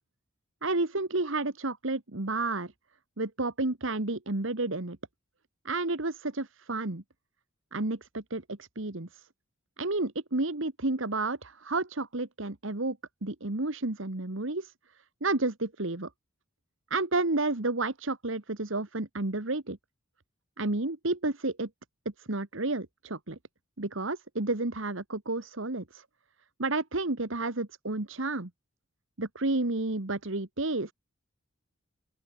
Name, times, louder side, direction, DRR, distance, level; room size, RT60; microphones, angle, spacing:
voice 1, 0.6-2.7 3.2-5.0 5.6-7.0 7.7-9.3 9.8-13.0 13.2-14.7 15.2-16.1 16.9-19.8 20.6-21.7 22.2-23.4 23.8-26.0 26.6-28.5 29.2-30.9, right 2 dB, 65° right, 1.6 m, -31 dB
open air
head